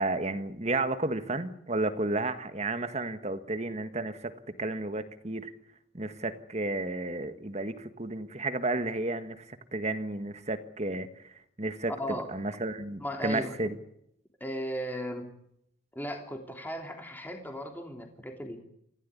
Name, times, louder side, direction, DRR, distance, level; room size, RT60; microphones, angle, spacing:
voice 1, 0.0-4.3 4.6-5.5 5.9-11.1 11.6-13.7, right 2 dB, 35° right, 10 dB, 1.7 m, -32 dB
voice 2, 11.9-12.3 13.0-13.7 14.4-15.3 15.9-18.6, equal, 10° left, 3 dB, 3.2 m, -36 dB
27.0 x 16.5 x 9.7 m, 0.75 s
head